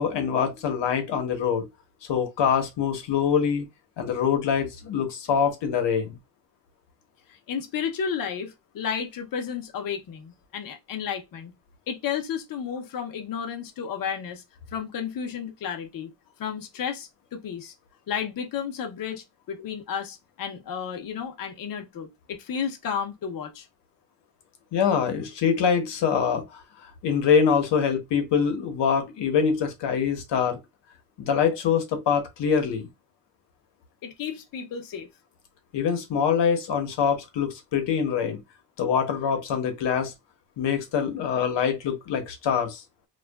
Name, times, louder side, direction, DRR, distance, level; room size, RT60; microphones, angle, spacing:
voice 1, 0.0-1.7 2.1-3.6 4.0-6.2 24.7-30.6 31.2-32.9 35.7-38.4 38.8-40.1 40.6-42.8, left 7 dB, 85° left, 0.9 m, -24 dB
voice 2, 7.3-11.5 11.9-14.4 14.7-16.1 16.4-17.7 18.1-23.7 34.0-35.1, left 7 dB, 55° left, 0.6 m, -32 dB
2.6 x 2.3 x 2.2 m
wide cardioid pair, 160°, 41 cm